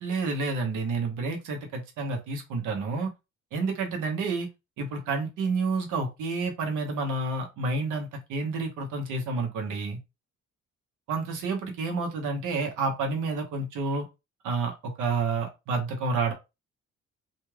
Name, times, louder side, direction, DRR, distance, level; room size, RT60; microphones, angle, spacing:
voice 1, 0.0-3.1 3.5-4.5 4.8-10.0 11.1-14.1 14.4-16.3, right 3 dB, 85° right, 3 dB, 1.0 m, -29 dB
2.5 x 2.3 x 3.2 m, 0.25 s
cardioid pair, 90°, 30 cm